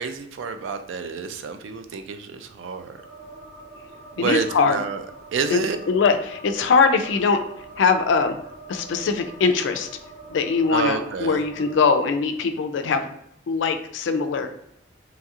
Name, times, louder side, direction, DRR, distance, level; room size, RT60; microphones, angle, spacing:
voice 1, 0.0-3.0 4.2-5.0 5.3-5.8 10.7-11.4, right 5 dB, 75° right, 8 dB, 0.3 m, -28 dB
sound 1, 2.9-11.8, right 2 dB, 15° right, 1.1 m, -44 dB
voice 2, 4.2-4.8 5.5-5.6 5.9-7.4 7.8-8.4 8.7-9.9 10.3-13.1 13.5-14.5, left 5 dB, 70° left, 7 dB, 0.3 m, -21 dB
2.8 x 2.8 x 2.4 m, 0.74 s
head